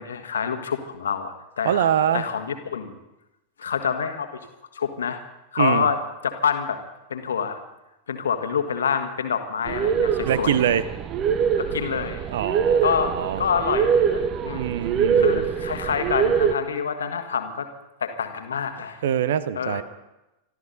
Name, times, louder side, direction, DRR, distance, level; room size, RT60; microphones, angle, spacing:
voice 1, 0.0-1.9 2.1-2.9 3.6-4.4 4.7-5.2 5.5-6.8 7.1-7.6 8.1-10.6 11.6-12.3 12.8-14.7 15.2-17.7 18.0-19.0 19.5-19.8, left 7 dB, 70° left, 7 dB, 1.5 m, -27 dB
voice 2, 1.6-2.3 5.6-5.9 10.2-10.8 12.3-13.4 14.5-15.5 19.0-19.8, right 9 dB, 60° right, 17 dB, 0.8 m, -24 dB
sound 1, 9.7-16.5, right 7 dB, 35° right, 0.9 m, -23 dB
26.0 x 13.0 x 4.0 m, 0.96 s
figure-of-eight pair, 90°, 0 cm